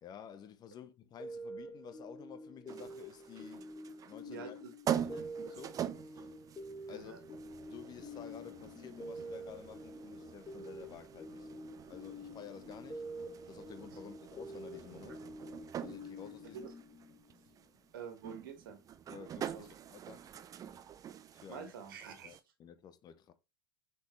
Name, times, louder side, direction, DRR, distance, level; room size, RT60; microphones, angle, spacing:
voice 1, 0.0-3.8 4.0-4.6 5.0-5.9 6.1-6.3 6.9-7.1 7.7-11.6 11.9-13.0 13.5-15.2 15.8-16.7 19.1-20.2 21.3-21.7 22.2-23.3, left 8 dB, 35° left, 0.9 m, -52 dB
sound 1, 1.2-17.5, equal, 20° left, 1.6 m, -47 dB
sound 2, 2.7-22.4, right 9 dB, 30° right, 0.6 m, -45 dB
voice 2, 4.3-4.7 6.9-7.2 16.5-16.7 17.9-18.8 19.5-19.7 21.5-22.4, right 6 dB, 70° right, 1.7 m, -47 dB
6.7 x 4.6 x 3.2 m
figure-of-eight pair, 80°, 12 cm